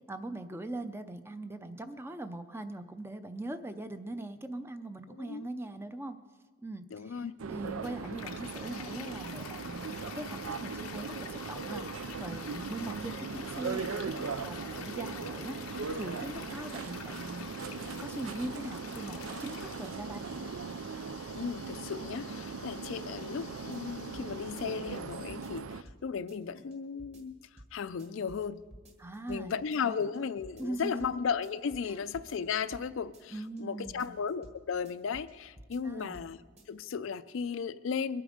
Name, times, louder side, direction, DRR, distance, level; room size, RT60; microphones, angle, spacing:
voice 1, 0.1-6.2 6.6-9.9 10.1-17.5 17.9-20.4 29.0-29.6 29.8-30.0 30.6-30.9 31.8-32.0 33.3-34.1 35.8-36.2, right 2 dB, 10° right, 9 dB, 0.5 m, -41 dB
voice 2, 5.1-5.5 6.9-7.3 21.3-27.4 27.7-28.6 29.3-36.4 36.7-38.2, left 6 dB, 65° left, 13 dB, 0.4 m, -35 dB
sound 1, 7.4-25.8, right 5 dB, 80° right, 0.5 m, -39 dB
Toilet flush, 7.6-25.6, left 8 dB, 90° left, 0.7 m, -48 dB
sound 2, 23.7-24.3 24.6-26.0 26.3-26.7 27.0-27.7 28.0-28.5 28.7-29.4 29.7-30.2 30.4-31.1 31.4-32.9 33.1-33.6 33.9-34.6 34.9-35.3 35.6-36.3 36.6-36.7, equal, 30° right, 1.6 m, -53 dB
22.5 x 8.6 x 5.0 m, 1.4 s
head